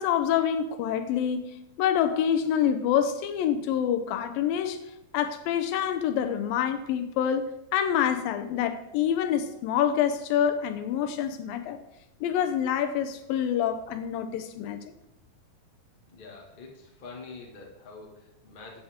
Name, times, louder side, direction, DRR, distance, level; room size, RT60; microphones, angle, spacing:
voice 1, 0.0-4.8 5.1-7.5 7.7-11.8 12.2-14.8, left 9 dB, 80° left, 10 dB, 2.5 m, -26 dB
voice 2, 16.1-18.8, left 4 dB, 25° left, -1 dB, 1.2 m, -45 dB
14.0 x 8.7 x 3.6 m, 0.85 s
omnidirectional pair, 4.1 m